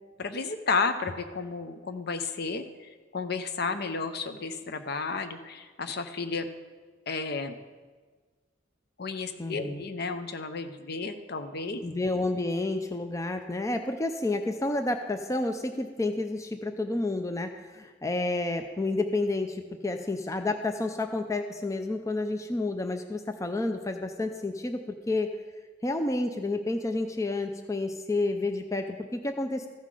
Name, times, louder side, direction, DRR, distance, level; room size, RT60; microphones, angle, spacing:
voice 1, 0.2-6.5 7.1-7.6 9.0-11.8, left 4 dB, 55° left, 9 dB, 0.7 m, -32 dB
voice 2, 9.4-9.8 11.8-25.3 25.8-29.7, left 2 dB, 15° left, 6 dB, 0.4 m, -30 dB
14.5 x 5.6 x 4.9 m, 1.4 s
head